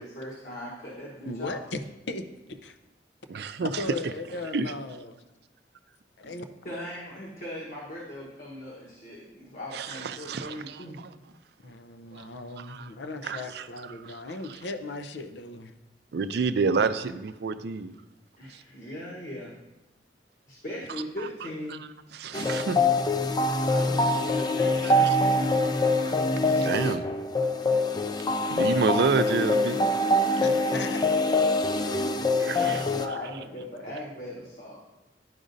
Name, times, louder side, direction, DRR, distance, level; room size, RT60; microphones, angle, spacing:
voice 1, 0.0-1.6 3.3-3.4 6.2-6.3 6.6-11.0 18.4-19.6 20.5-21.8 23.7-26.0 32.3-34.8, left 1 dB, 50° left, -5 dB, 1.2 m, -39 dB
voice 2, 1.2-2.8 3.8-5.2 6.2-6.4 11.6-15.7 30.4-31.0 32.4-32.8, left 2 dB, 75° left, 8 dB, 0.5 m, -37 dB
voice 3, 3.3-3.8 4.5-4.7 9.7-11.1 12.1-12.3 12.6-12.9 13.2-13.7 14.0-14.2 16.1-17.9 18.5-18.6 22.1-22.8 26.1-26.2 26.5-27.0 28.5-29.8 32.4-32.8, right 4 dB, 65° right, 11 dB, 0.4 m, -29 dB
sound 1, 22.3-33.1, left 2 dB, 25° left, 0.3 m, -24 dB
11.0 x 5.0 x 2.6 m, 0.98 s
head